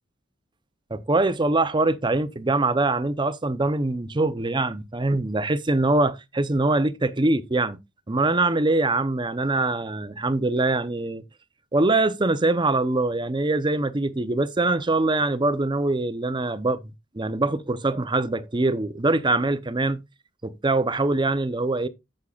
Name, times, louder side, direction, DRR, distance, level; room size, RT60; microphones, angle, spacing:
voice 1, 0.9-7.8 8.1-11.2 11.7-16.8 17.1-20.0 20.4-21.9, right 2 dB, 25° right, 0.7 m, -23 dB
14.5 x 6.5 x 2.4 m
head